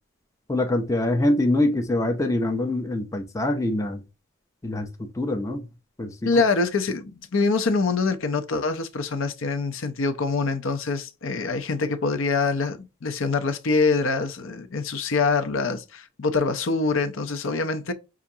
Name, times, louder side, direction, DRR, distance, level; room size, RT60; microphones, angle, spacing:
voice 1, 0.5-4.0 4.6-5.7 6.0-6.3, left 1 dB, 15° left, 0.5 m, -24 dB
voice 2, 6.2-17.9, left 4 dB, 70° left, 0.6 m, -25 dB
5.7 x 2.5 x 2.7 m
head